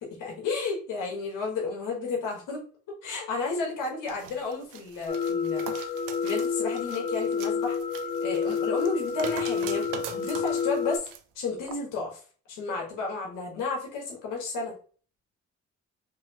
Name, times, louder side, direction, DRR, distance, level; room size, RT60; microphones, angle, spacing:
voice 1, 0.0-5.6 6.2-7.8 8.2-11.1 11.3-12.2 12.5-14.7, left 4 dB, 85° left, 0 dB, 1.2 m, -32 dB
sound 1, 4.1-11.2 11.6-11.8, right 9 dB, 90° right, 0.5 m, -42 dB
sound 2, 5.1-11.0, left 6 dB, 35° left, 2.0 m, -29 dB
4.7 x 2.8 x 2.8 m, 0.40 s
supercardioid pair, 60°, 31 cm